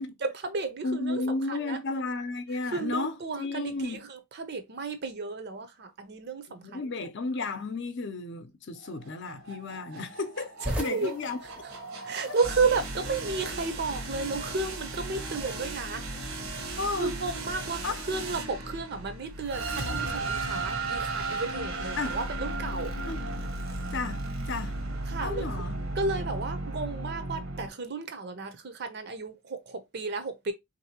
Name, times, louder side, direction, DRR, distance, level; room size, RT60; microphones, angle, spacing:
voice 1, 0.2-1.2 1.5-1.8 2.6-6.8 10.6-11.2 12.0-16.1 16.6-22.9 25.1-25.7 26.0-30.5, right 4 dB, 50° right, 0.6 m, -33 dB
voice 2, 0.8-4.0 6.6-11.4 16.8-17.1 17.8-18.0 22.0-22.2 23.0-23.2 23.9-24.8 25.2-25.7, left 3 dB, 55° left, 0.6 m, -33 dB
sound 1, 8.8-27.7, right 2 dB, 80° right, 1.0 m, -35 dB
sound 2, 10.6-18.2, equal, 5° right, 0.5 m, -43 dB
3.5 x 2.7 x 2.8 m
head